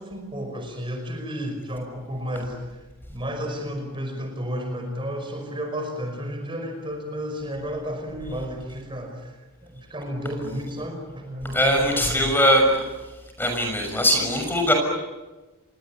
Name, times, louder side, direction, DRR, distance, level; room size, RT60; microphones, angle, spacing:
voice 1, 0.0-2.8 3.1-9.4 9.6-12.3, equal, 20° right, 4 dB, 5.4 m, -32 dB
voice 2, 11.5-12.7 13.4-14.7, equal, 10° left, 3 dB, 6.4 m, -20 dB
29.0 x 23.0 x 8.7 m, 1.2 s
head